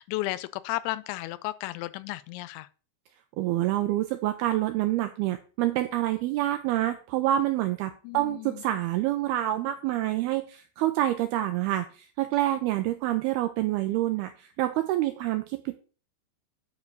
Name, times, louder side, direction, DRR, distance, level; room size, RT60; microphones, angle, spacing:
voice 1, 0.0-2.7 8.0-8.6, left 17 dB, 90° left, 2.9 m, -34 dB
voice 2, 3.4-15.8, right 14 dB, 90° right, 2.2 m, -27 dB
9.6 x 4.4 x 6.6 m
omnidirectional pair, 5.1 m